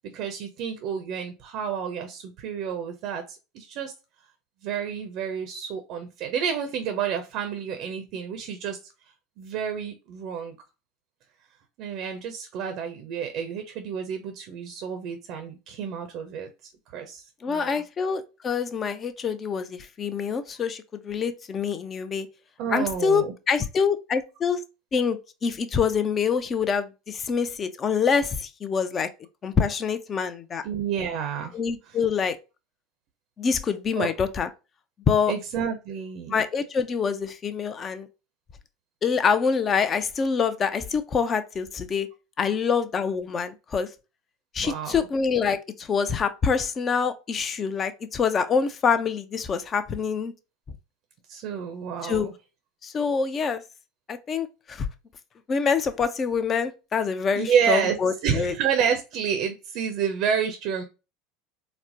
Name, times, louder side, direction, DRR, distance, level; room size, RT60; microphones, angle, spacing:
voice 1, 0.1-3.2 3.5-3.9 4.6-8.8 9.4-10.6 11.8-17.8 22.6-23.3 30.6-31.6 34.0-34.1 35.3-36.3 44.6-45.0 51.3-52.3 57.4-58.0 58.2-60.8, right 7 dB, 55° right, 0.5 m, -29 dB
voice 2, 17.4-22.3 22.7-24.6 24.9-29.1 29.4-30.6 31.5-32.4 33.4-34.5 35.1-35.3 36.3-38.1 39.0-42.1 42.4-43.9 44.5-50.3 52.0-52.3 52.8-53.6 54.1-54.9 55.5-58.5, left 6 dB, 30° left, 0.5 m, -25 dB
4.1 x 2.1 x 2.6 m
figure-of-eight pair, 75°, 0 cm